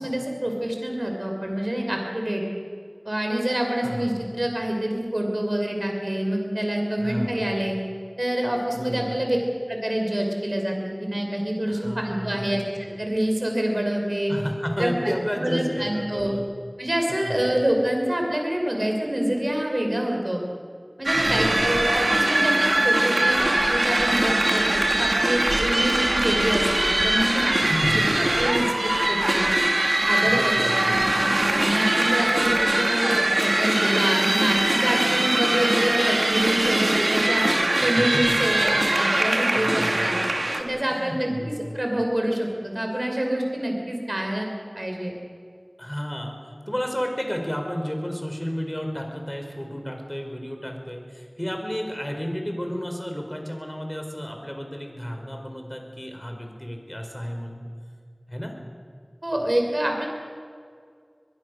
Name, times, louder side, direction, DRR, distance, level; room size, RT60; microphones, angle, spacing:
voice 1, 0.0-2.4 3.0-7.8 8.2-9.4 9.7-14.3 14.8-15.1 15.4-16.3 16.8-20.4 21.0-27.6 28.0-28.1 28.4-29.4 30.1-30.7 31.0-31.1 31.6-37.4 37.8-40.2 40.6-44.5 44.8-45.1 59.2-60.1, right 1 dB, 50° right, 1 dB, 5.6 m, -26 dB
voice 2, 7.0-7.5 8.7-9.2 11.7-12.5 14.3-16.4 17.1-17.4 21.1-21.5 27.7-28.2 30.2-31.3 38.1-38.2 39.5-40.3 40.8-41.7 45.8-46.3 46.7-57.7 58.3-58.5, equal, 15° left, 3 dB, 5.0 m, -32 dB
sound 1, 21.1-40.6, right 1 dB, 80° right, 2.4 m, -22 dB
22.5 x 22.5 x 6.7 m, 2.1 s
wide cardioid pair, 40°, 0 cm